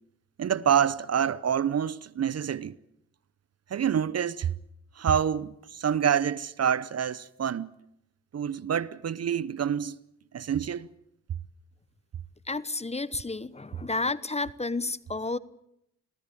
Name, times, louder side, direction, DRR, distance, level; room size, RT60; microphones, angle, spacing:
voice 1, 0.4-2.8 3.7-4.5 5.0-7.7 8.3-10.0 10.3-10.9, right 8 dB, 45° right, 0.8 m, -27 dB
voice 2, 12.5-15.4, left 3 dB, 20° left, 1.1 m, -31 dB
25.5 x 17.0 x 8.7 m
hypercardioid pair, 45°, 34 cm